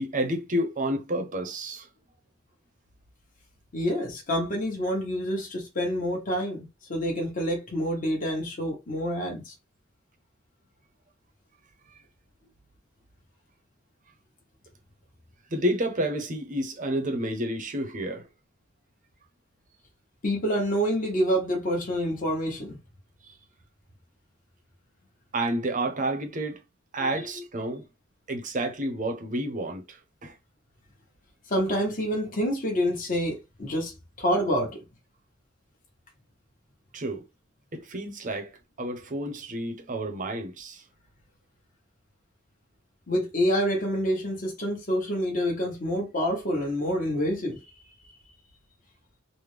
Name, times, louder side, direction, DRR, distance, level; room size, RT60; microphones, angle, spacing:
voice 1, 0.0-1.9 15.5-18.3 25.3-26.6 26.9-27.8 28.3-30.3 36.9-37.2 37.7-40.8, right 1 dB, 40° right, 0.7 m, -30 dB
voice 2, 3.7-6.6 6.9-9.5 20.2-22.8 27.0-27.1 31.5-34.8 43.1-47.6, equal, 40° left, 1.2 m, -27 dB
3.4 x 2.2 x 3.2 m
head